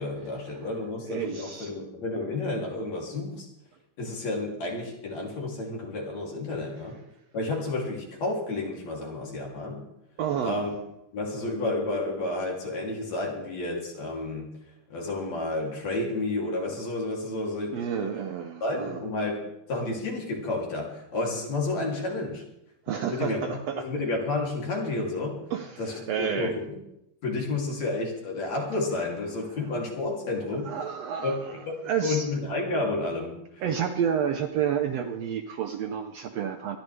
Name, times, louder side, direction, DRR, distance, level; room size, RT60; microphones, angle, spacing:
voice 1, 0.0-3.5 4.0-7.0 7.3-9.8 10.4-10.7 11.1-14.5 14.9-18.2 18.6-22.4 23.0-25.4 25.8-26.7 27.2-30.7 31.2-33.4, left 2 dB, 60° left, -1 dB, 4.1 m, -31 dB
voice 2, 1.0-1.7 10.2-10.6 17.7-19.0 22.9-23.9 25.5-26.6 30.6-32.3 33.6-36.8, right 8 dB, 70° right, 5 dB, 1.6 m, -30 dB
25.0 x 11.0 x 3.3 m, 0.82 s
omnidirectional pair, 3.6 m